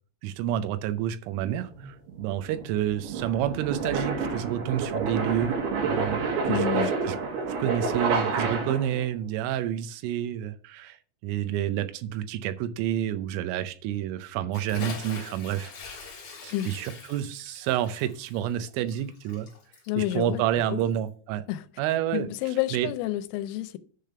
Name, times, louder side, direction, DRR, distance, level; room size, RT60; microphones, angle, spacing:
voice 1, 0.2-5.5 5.8-6.7 7.0-7.2 7.6-11.0 11.2-15.7 16.1-19.5 20.0-21.4 21.8-22.3 22.7-22.9, right 11 dB, 80° right, 3.1 m, -29 dB
sound 1, 1.4-9.0, right 4 dB, 65° right, 3.0 m, -29 dB
voice 2, 6.5-6.9 16.5-16.7 19.9-20.4 20.7-20.8 21.5-21.6 22.1-23.8, left 14 dB, 85° left, 3.2 m, -29 dB
Bathtub (filling or washing) / Splash splatter, 14.5-21.1, left 4 dB, 45° left, 2.1 m, -43 dB
10.0 x 3.4 x 5.6 m
omnidirectional pair, 5.9 m